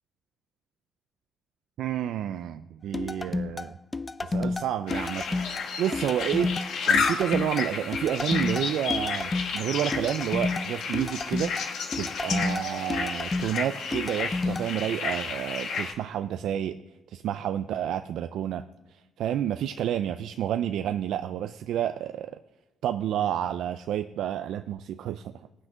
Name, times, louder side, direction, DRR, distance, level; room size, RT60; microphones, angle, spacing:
voice 1, 1.8-3.8 4.2-5.4 5.8-6.5 6.9-11.5 11.9-16.8 17.1-22.4 22.8-25.3, right 10 dB, 80° right, 10 dB, 0.4 m, -30 dB
sound 1, 2.9-14.7, left 3 dB, 20° left, 0.4 m, -31 dB
sound 2, 4.9-15.9, left 5 dB, 80° left, 1.5 m, -31 dB
17.5 x 6.2 x 5.1 m, 1.0 s
cardioid pair, 90°, 0 cm